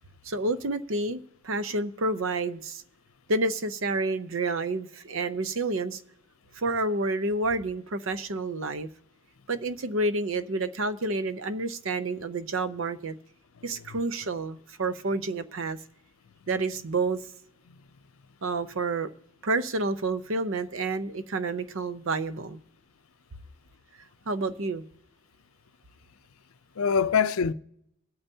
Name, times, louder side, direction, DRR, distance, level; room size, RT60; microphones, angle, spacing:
voice 1, 0.2-2.8 3.3-6.0 6.6-8.9 9.5-13.1 13.6-15.8 16.5-17.2 18.4-19.1 19.4-22.6 24.3-24.8, right 2 dB, 65° right, 0.7 m, -29 dB
voice 2, 13.6-14.0 17.7-17.8 26.8-27.5, left 6 dB, 75° left, 0.5 m, -26 dB
23.5 x 8.9 x 2.8 m
head